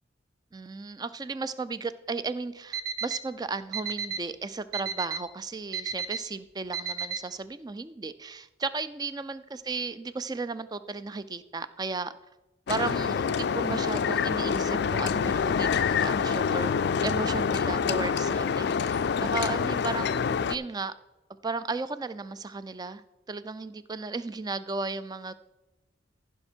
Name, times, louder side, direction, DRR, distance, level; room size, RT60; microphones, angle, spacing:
voice 1, 0.5-12.1 12.7-16.7 17.0-20.1 20.5-20.9 21.4-23.0 23.3-25.3, right 4 dB, 20° right, 14 dB, 0.4 m, -35 dB
Alarm, 2.7-3.2 3.7-4.2 4.7-5.2 5.7-6.2 6.7-7.2, right 6 dB, 55° right, 0.7 m, -31 dB
sound 1, 12.7-20.5, left 6 dB, 55° left, 0.3 m, -26 dB
15.0 x 5.8 x 4.4 m, 1.0 s
head